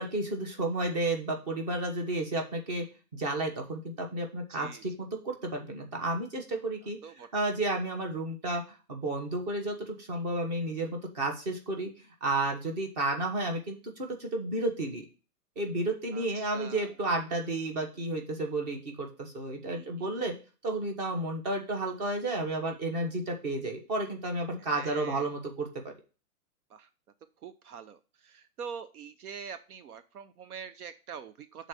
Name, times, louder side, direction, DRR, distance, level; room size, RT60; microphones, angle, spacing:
voice 1, 0.0-2.8 3.1-7.0 7.3-8.6 8.9-11.9 12.2-15.0 15.6-20.3 20.6-25.7, right 2 dB, 30° right, 3 dB, 1.3 m, -32 dB
voice 2, 4.5-4.8 7.0-7.3 16.1-16.9 19.7-20.1 24.6-25.3 26.7-26.9 27.4-31.7, right 7 dB, 75° right, 12 dB, 0.7 m, -44 dB
6.4 x 4.0 x 6.3 m, 0.34 s
hypercardioid pair, 170°, 45 cm